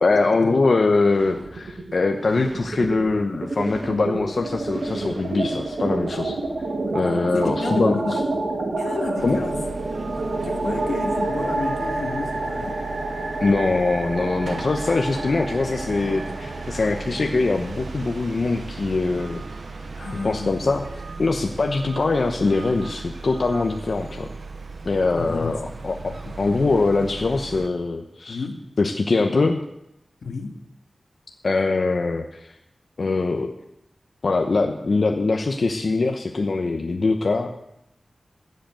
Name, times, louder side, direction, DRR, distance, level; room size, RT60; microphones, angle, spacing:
voice 1, 0.0-6.4 6.9-8.2 9.2-9.4 13.4-19.4 20.2-20.9 21.2-24.3 24.8-28.4 28.8-29.6 31.4-32.5 33.0-33.5 34.2-37.5, left 3 dB, 65° left, 4 dB, 1.0 m, -22 dB
sound 1, 1.1-1.9 2.2-20.3, right 2 dB, 90° right, 1.9 m, -29 dB
voice 2, 7.3-8.2 8.8-9.6 10.4-12.8 20.0-20.6 25.1-25.8 26.2-26.4 27.6-27.7 28.3-28.6 30.2-30.5, left 3 dB, 90° left, 4 dB, 1.8 m, -31 dB
sound 2, 9.2-27.7, right 4 dB, 65° right, 0.9 m, -37 dB
15.5 x 8.1 x 7.7 m, 0.83 s
wide cardioid pair, 75°, 0 cm